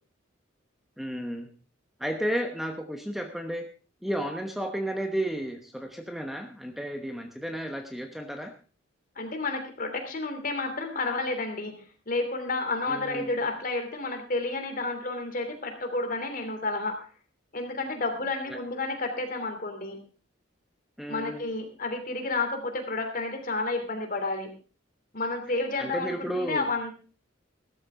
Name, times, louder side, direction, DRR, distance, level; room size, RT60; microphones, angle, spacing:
voice 1, 1.0-1.5 2.0-3.7 4.0-8.5 12.9-13.3 18.5-18.6 21.0-21.4 25.8-26.7, equal, ahead, 5 dB, 1.0 m, -32 dB
voice 2, 9.1-11.7 12.1-16.9 17.5-20.0 21.1-24.5 25.1-26.9, left 3 dB, 45° left, 5 dB, 3.0 m, -31 dB
16.0 x 13.5 x 3.7 m, 0.36 s
head